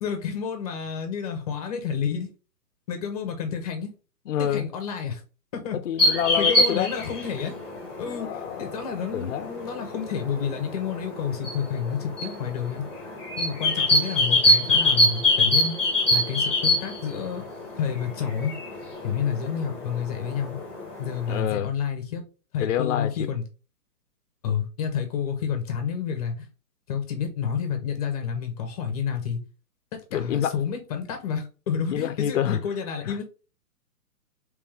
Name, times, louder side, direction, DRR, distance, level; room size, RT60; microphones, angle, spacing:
voice 1, 0.0-2.3 2.9-3.9 4.4-5.2 5.5-5.8 6.4-7.6 8.0-12.8 13.4-15.8 16.1-17.5 17.7-18.5 19.0-20.6 21.0-22.2 22.5-23.4 24.4-26.5 26.9-29.4 29.9-33.2, left 7 dB, 25° left, 0.8 m, -30 dB
voice 2, 4.3-4.7 5.9-6.9 8.0-8.8 9.1-9.5 21.3-21.7 22.6-23.1 30.1-30.5 31.9-32.6 33.0-33.1, left 10 dB, 55° left, 0.5 m, -27 dB
sound 1, 6.0-21.4, left 1 dB, 5° left, 1.1 m, -25 dB
3.4 x 3.3 x 3.3 m
hypercardioid pair, 155°, 47 cm